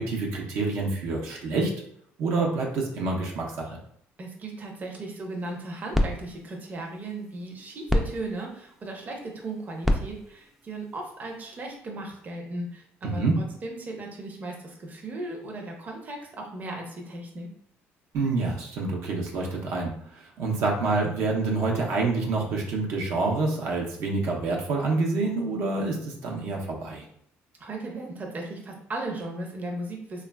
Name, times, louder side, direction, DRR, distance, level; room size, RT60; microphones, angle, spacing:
voice 1, 0.0-1.7 2.2-3.8 13.0-13.4 18.1-27.0, right 3 dB, 70° right, -1 dB, 0.6 m, -27 dB
voice 2, 4.2-17.5 27.6-30.2, right 2 dB, 35° right, 1 dB, 0.6 m, -36 dB
sound 1, 5.4-11.8, equal, 5° right, 0.3 m, -32 dB
3.1 x 2.3 x 2.2 m, 0.69 s
cardioid pair, 100°, 5 cm